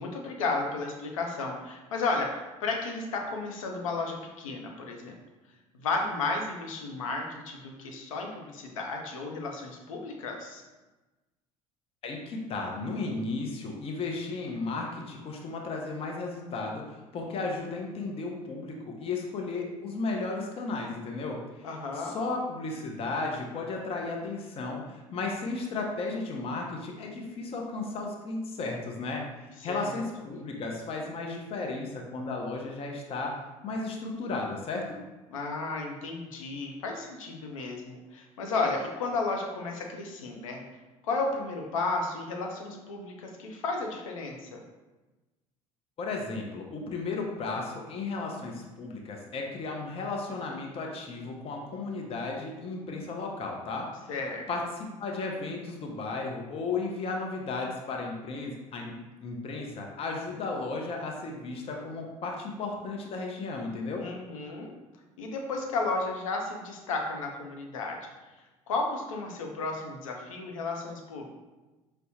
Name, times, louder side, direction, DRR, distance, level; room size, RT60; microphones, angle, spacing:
voice 1, 0.0-5.1 5.7-10.6 21.6-22.1 29.6-30.0 35.3-40.6 41.0-44.6 54.1-54.5 64.0-64.7 65.2-68.0 68.7-71.3, left 3 dB, 70° left, 1 dB, 0.6 m, -33 dB
voice 2, 12.0-21.4 22.0-29.2 29.6-35.0 46.0-53.9 54.5-58.9 59.2-64.0, left 3 dB, 35° left, 1 dB, 0.6 m, -34 dB
5.4 x 2.1 x 2.7 m, 1.1 s
figure-of-eight pair, 65°, 18 cm